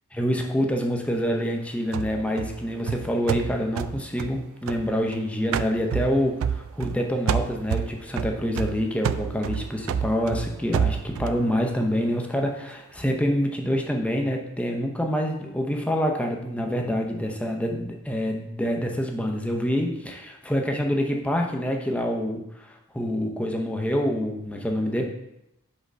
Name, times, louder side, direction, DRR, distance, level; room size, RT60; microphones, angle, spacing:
voice 1, 0.2-25.0, equal, 5° left, 1 dB, 0.7 m, -26 dB
sound 1, 1.9-5.2 5.5-7.0 7.3-11.4, right 7 dB, 65° right, 0.3 m, -29 dB
5.3 x 3.8 x 5.0 m, 0.85 s
head